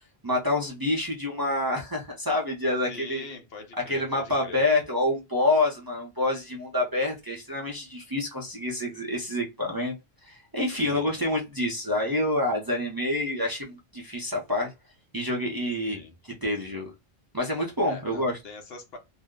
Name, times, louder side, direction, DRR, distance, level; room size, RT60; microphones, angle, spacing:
voice 1, 0.2-3.3 3.8-9.9 10.2-14.7 15.1-16.9 17.3-18.4, left 2 dB, 25° right, 0.6 m, -27 dB
voice 2, 2.9-4.6 10.7-11.1 15.9-16.1 17.8-19.0, left 3 dB, 70° left, 1.0 m, -43 dB
2.6 x 2.0 x 3.5 m
omnidirectional pair, 1.1 m